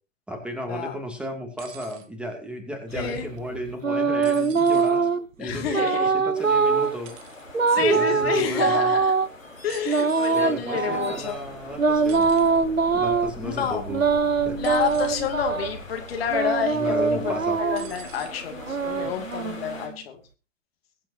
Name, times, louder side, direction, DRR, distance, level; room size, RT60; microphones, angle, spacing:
voice 1, 0.3-5.1 5.4-7.1 7.8-8.9 10.3-12.3 12.9-14.0 14.4-14.6 16.7-17.6, equal, 5° right, 3 dB, 2.5 m, -34 dB
sound 1, 1.6-2.1 4.2-5.0 7.0-7.4 9.7-10.4 12.1-12.6 14.6-15.3 15.9-16.2 17.8-18.3 19.4-19.5, right 11 dB, 30° right, 1.4 m, -46 dB
voice 2, 2.9-3.3 5.4-6.1 7.7-9.1 9.6-11.4 13.4-13.8 14.6-20.2, left 7 dB, 50° left, 4 dB, 2.5 m, -29 dB
sound 2, 2.9-5.3 5.7-7.0 7.5-9.3 9.9-11.2 11.8-13.3 13.9-15.7 16.3-17.9 18.5-19.9, right 4 dB, 90° right, 1.0 m, -23 dB
sound 3, 6.3-19.9, left 2 dB, 85° left, 4.7 m, -41 dB
21.5 x 8.9 x 2.8 m, 0.33 s
figure-of-eight pair, 115°, 39 cm